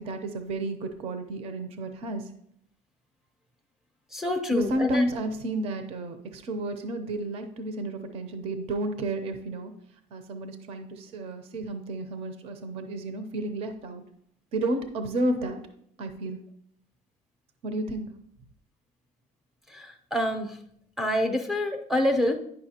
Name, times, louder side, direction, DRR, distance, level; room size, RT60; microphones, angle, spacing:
voice 1, 0.0-2.3 4.5-9.7 10.1-14.0 14.5-15.6 16.0-16.4 17.6-18.1, right 1 dB, 45° right, 8 dB, 0.6 m, -31 dB
voice 2, 4.1-5.0 19.7-20.5 21.0-22.4, left 1 dB, ahead, 3 dB, 0.6 m, -27 dB
9.9 x 5.5 x 2.8 m, 0.69 s
cardioid pair, 175°, 14 cm